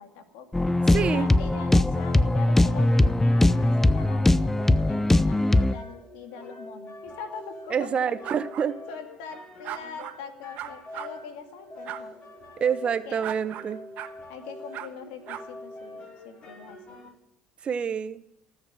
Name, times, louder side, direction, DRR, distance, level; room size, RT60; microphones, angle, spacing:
voice 1, 0.0-8.1 8.9-12.1 13.1-13.4 14.3-17.0, left 6 dB, 75° left, 7 dB, 2.3 m, -42 dB
sound 1, 0.5-5.7, left 1 dB, 10° left, 0.5 m, -21 dB
voice 2, 0.9-1.3 7.7-8.8 12.6-13.8 17.6-18.2, right 7 dB, 40° right, 13 dB, 1.1 m, -27 dB
sound 2, 2.8-17.1, left 1 dB, 40° left, 5.5 m, -44 dB
sound 3, 8.2-8.7 9.6-10.2 10.6-11.1 11.9-12.0 13.2-13.7 14.0-14.1 14.7-14.9 15.3-15.4, right 12 dB, 60° right, 1.2 m, -36 dB
18.5 x 6.6 x 9.7 m, 0.78 s
supercardioid pair, 80°, 3 cm